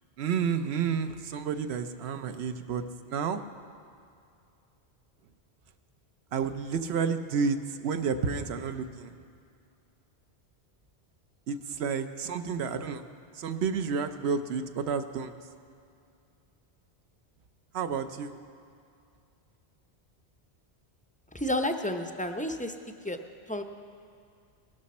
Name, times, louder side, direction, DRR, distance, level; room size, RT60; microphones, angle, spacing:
voice 1, 0.2-3.4 6.3-9.2 11.5-13.0 13.3-15.3 17.7-18.3, right 6 dB, 80° right, 9 dB, 0.9 m, -30 dB
voice 2, 21.3-22.7 23.0-23.2 23.5-23.6, left 1 dB, 10° left, 5 dB, 0.4 m, -30 dB
19.5 x 12.0 x 4.2 m, 2.4 s
omnidirectional pair, 1.1 m